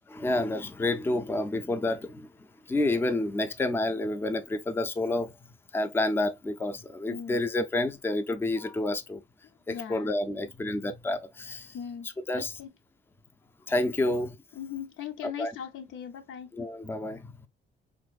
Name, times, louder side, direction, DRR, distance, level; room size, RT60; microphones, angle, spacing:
voice 1, 0.1-2.3 2.7-9.2 9.7-11.8 12.0-12.6 13.7-14.4 15.2-15.5 16.5-17.3, left 2 dB, 10° left, 0.4 m, -29 dB
voice 2, 7.1-7.4 9.7-10.1 11.7-12.1 12.3-12.7 14.0-14.1 14.6-16.5, left 9 dB, 80° left, 0.6 m, -39 dB
3.4 x 2.5 x 2.3 m
cardioid pair, 90°, 20 cm